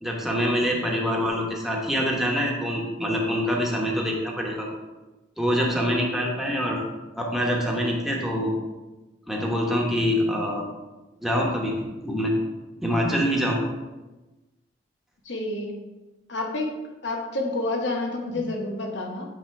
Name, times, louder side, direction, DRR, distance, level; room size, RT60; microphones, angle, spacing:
voice 1, 0.0-4.7 5.4-6.8 7.2-8.5 9.3-10.6 11.2-12.3 12.8-13.6 18.3-18.4, equal, ahead, -2 dB, 1.1 m, -25 dB
voice 2, 15.2-15.8 16.3-16.7 17.0-19.3, left 2 dB, 70° left, 1 dB, 1.1 m, -29 dB
8.5 x 2.8 x 4.7 m, 1.1 s
head